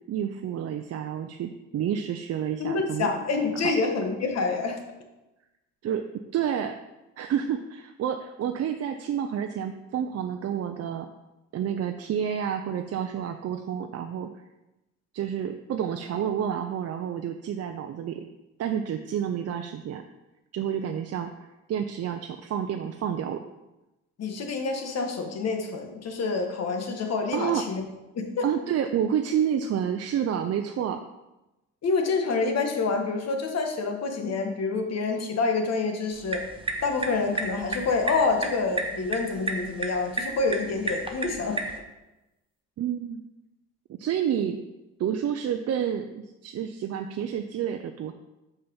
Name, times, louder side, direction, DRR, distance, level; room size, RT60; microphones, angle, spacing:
voice 1, 0.1-3.1 3.6-3.7 5.8-6.0 6.3-6.7 7.2-11.1 11.5-14.3 15.1-18.3 18.6-20.0 20.5-23.4 27.3-27.7 28.4-31.0 42.8-43.2 44.0-44.6 45.0-48.1, right 9 dB, 55° right, 6 dB, 0.5 m, -29 dB
voice 2, 2.6-4.8 24.2-27.8 28.1-28.5 31.8-36.4 36.8-41.6, left 4 dB, 55° left, 4 dB, 1.4 m, -27 dB
sound 1, 36.1-41.8, right 2 dB, 15° right, 1.0 m, -33 dB
5.7 x 5.5 x 5.4 m, 1.0 s
cardioid pair, 90°, 30 cm